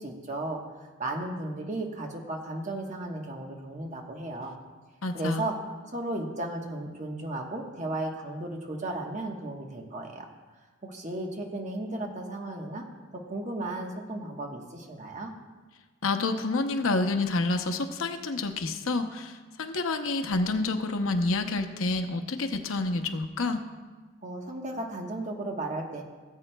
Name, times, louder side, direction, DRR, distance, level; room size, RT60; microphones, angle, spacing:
voice 1, 0.0-4.6 5.1-5.5 5.9-10.3 10.8-12.8 13.3-15.3 24.2-26.0, right 2 dB, 35° right, 1 dB, 1.2 m, -35 dB
voice 2, 5.0-5.4 16.0-23.6, left 3 dB, 90° left, 7 dB, 0.8 m, -28 dB
18.0 x 8.1 x 2.3 m, 1.4 s
head